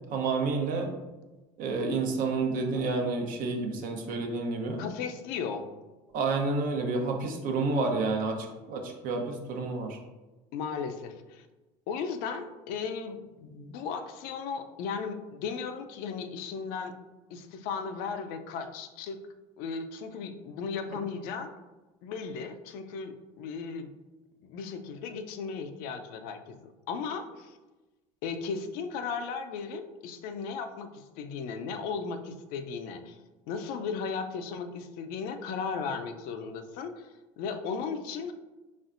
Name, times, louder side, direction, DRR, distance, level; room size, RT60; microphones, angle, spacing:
voice 1, 0.1-0.9 1.6-4.8 6.1-10.0, right 3 dB, 60° right, 3 dB, 0.8 m, -29 dB
voice 2, 4.8-5.7 10.5-11.5 11.9-16.9 17.3-19.2 19.6-21.5 22.0-23.9 24.4-27.6 28.2-33.2 33.5-37.1 37.4-38.3, left 5 dB, 75° left, 7 dB, 0.5 m, -36 dB
4.3 x 3.3 x 2.5 m, 1.1 s
supercardioid pair, 95°, 16 cm